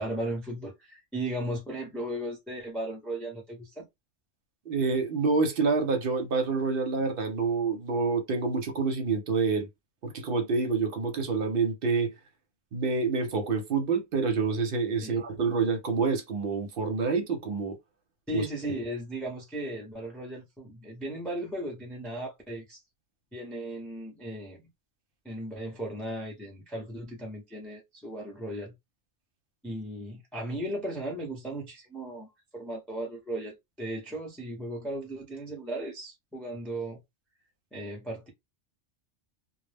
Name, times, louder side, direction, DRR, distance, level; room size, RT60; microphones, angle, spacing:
voice 1, 0.0-3.8 15.0-15.2 18.3-22.8 23.3-24.6 25.2-28.7 29.6-37.0 37.7-38.3, right 1 dB, ahead, 0.6 m, -36 dB
voice 2, 4.7-9.7 10.0-12.1 12.7-17.8 18.3-18.7, right 4 dB, 55° right, 0.8 m, -27 dB
2.3 x 2.0 x 3.2 m
omnidirectional pair, 1.3 m